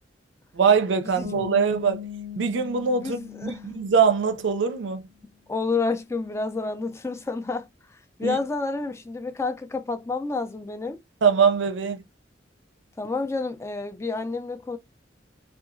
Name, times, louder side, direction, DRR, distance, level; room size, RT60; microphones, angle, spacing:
voice 1, 0.5-2.0 2.4-5.0 8.2-8.4 11.2-12.0, right 6 dB, 75° right, 0.4 m, -22 dB
Bass guitar, 1.2-4.9, left 9 dB, 30° right, 0.6 m, -39 dB
voice 2, 3.0-3.6 5.5-7.7 8.2-11.0 13.0-14.8, left 3 dB, 15° left, 0.3 m, -29 dB
2.7 x 2.3 x 2.5 m
head